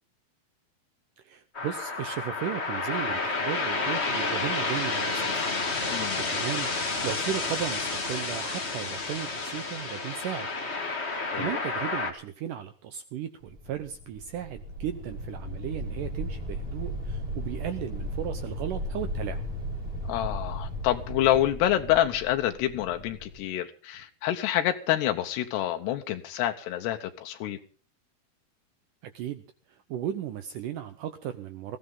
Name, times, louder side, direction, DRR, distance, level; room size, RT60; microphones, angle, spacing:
voice 1, 1.2-5.5 6.3-6.7 7.0-10.5 11.3-19.4 29.0-29.4 29.7-31.8, right 10 dB, 75° right, 1.9 m, -35 dB
sound 1, 1.5-12.1, left 3 dB, 65° left, 0.6 m, -30 dB
voice 2, 5.9-6.3 11.3-11.7 20.0-27.6, left 12 dB, 85° left, 3.1 m, -27 dB
sound 2, 13.4-23.4, equal, 35° right, 4.6 m, -36 dB
20.5 x 15.5 x 3.8 m
omnidirectional pair, 4.7 m